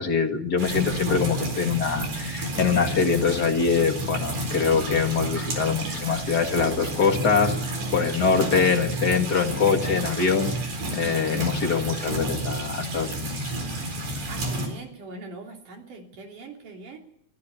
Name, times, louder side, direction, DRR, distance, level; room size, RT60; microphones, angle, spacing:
voice 1, 0.0-10.5 10.9-13.5, left 5 dB, 40° left, 5 dB, 1.9 m, -24 dB
sound 1, 0.6-14.7, right 1 dB, 75° right, 5.6 m, -30 dB
voice 2, 14.3-17.0, right 3 dB, 90° right, 2 dB, 4.9 m, -41 dB
24.5 x 15.5 x 8.2 m, 0.71 s
omnidirectional pair, 3.5 m